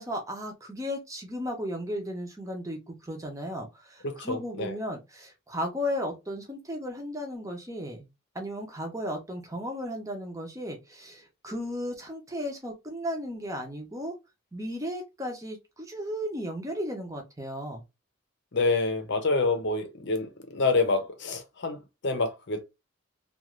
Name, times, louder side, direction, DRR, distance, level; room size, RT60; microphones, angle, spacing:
voice 1, 0.0-8.0 8.3-14.1 14.5-17.8, equal, 15° right, 0.7 m, -35 dB
voice 2, 4.0-4.7 18.5-22.6, left 3 dB, 55° left, 0.7 m, -27 dB
2.5 x 2.4 x 3.1 m
head